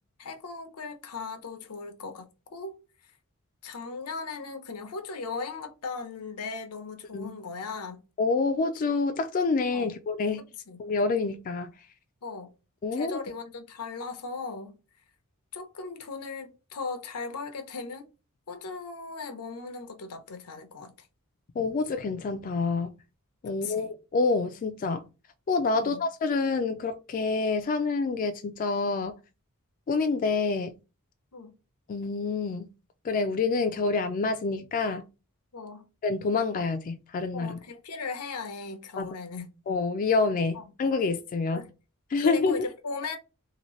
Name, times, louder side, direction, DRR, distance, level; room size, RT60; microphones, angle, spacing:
voice 1, 0.2-2.8 3.6-8.0 9.7-9.9 10.4-10.8 12.2-12.5 12.9-14.8 15.5-18.1 18.5-21.1 23.5-23.9 25.7-26.0 31.3-31.5 35.5-35.8 37.3-39.5 40.5-40.6 41.5-41.7 42.2-43.2, left 4 dB, 85° left, 0.7 m, -38 dB
voice 2, 8.2-10.4 10.8-11.7 12.8-13.2 21.6-22.9 23.4-25.0 25.5-29.1 29.9-30.7 31.9-32.7 33.0-35.0 36.0-37.6 39.0-39.1 39.7-41.6 42.1-42.6, left 4 dB, 35° left, 0.3 m, -27 dB
2.9 x 2.6 x 3.0 m
head